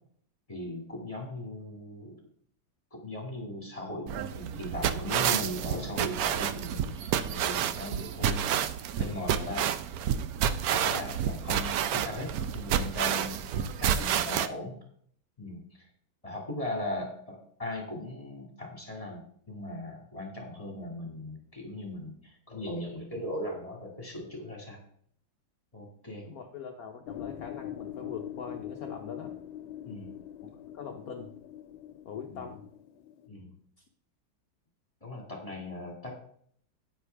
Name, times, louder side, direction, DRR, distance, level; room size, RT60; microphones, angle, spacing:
voice 1, 0.5-2.2 2.9-8.6 9.0-9.7 10.7-13.5 13.8-14.8 15.4-15.9 16.2-24.8 25.7-26.2 29.8-30.1 32.3-32.4 33.3-33.5 35.0-36.1, left 1 dB, 15° left, 0 dB, 2.2 m, -38 dB
sound 1, 4.1-14.5, right 9 dB, 75° right, 0.8 m, -29 dB
voice 2, 26.2-29.3 30.7-31.3 32.0-32.6, left 6 dB, 60° left, 3 dB, 1.1 m, -41 dB
sound 2, 27.1-33.3, left 11 dB, 85° left, 1.5 m, -43 dB
9.7 x 9.5 x 3.4 m, 0.62 s
omnidirectional pair, 2.2 m